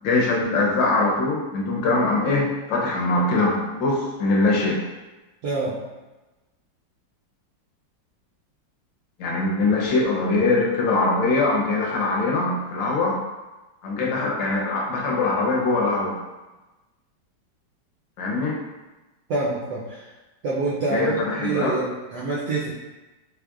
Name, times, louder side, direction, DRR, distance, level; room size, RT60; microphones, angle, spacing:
voice 1, 0.0-4.8 9.2-13.2 13.8-16.2 18.2-18.6 20.9-21.8, left 3 dB, 75° left, -1 dB, 1.4 m, -22 dB
voice 2, 5.4-5.8 19.3-20.1 20.4-22.7, right 3 dB, 75° right, -6 dB, 1.1 m, -26 dB
3.6 x 3.3 x 2.3 m, 1.1 s
omnidirectional pair, 2.1 m